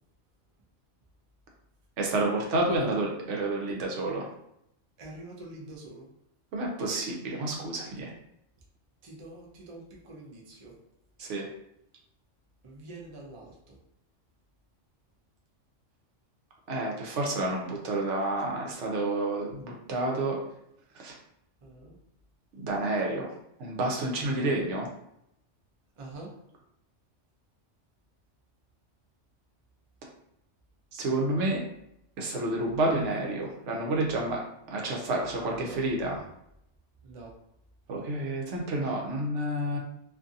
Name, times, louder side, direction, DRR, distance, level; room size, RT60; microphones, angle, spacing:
voice 1, 2.0-4.3 6.5-8.1 11.2-11.5 16.7-20.4 20.9-21.2 22.6-23.3 23.6-24.9 30.9-31.6 32.2-36.2 37.9-39.8, right 2 dB, 75° right, -1 dB, 1.0 m, -29 dB
voice 2, 5.0-6.1 9.0-10.8 12.6-13.8 21.6-22.0 24.2-24.6 26.0-26.3 35.5-35.8 37.0-37.4, right 2 dB, 40° right, -2 dB, 0.5 m, -45 dB
2.6 x 2.4 x 2.6 m, 0.78 s
omnidirectional pair, 1.3 m